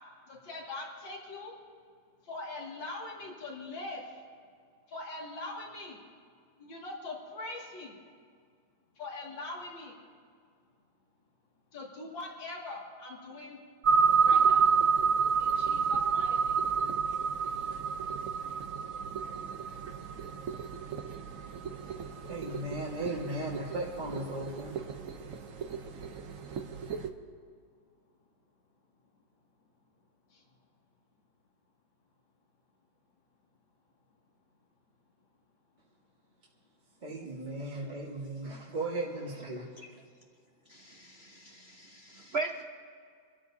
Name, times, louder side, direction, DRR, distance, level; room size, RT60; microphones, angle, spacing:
voice 1, 0.3-1.6 2.2-4.2 4.9-6.0 6.6-7.9 9.0-9.9 11.7-13.6 14.2-14.7 15.4-16.6 30.3-30.4, left 2 dB, 85° left, -3 dB, 2.9 m, -42 dB
sound 1, 13.8-27.1, right 6 dB, 55° right, 1.0 m, -29 dB
voice 2, 22.3-24.8 37.0-39.7, right 2 dB, 25° right, -5 dB, 1.6 m, -36 dB
voice 3, 40.7-42.6, right 3 dB, 75° right, 4 dB, 0.5 m, -38 dB
27.5 x 13.0 x 2.7 m, 2.1 s
omnidirectional pair, 2.0 m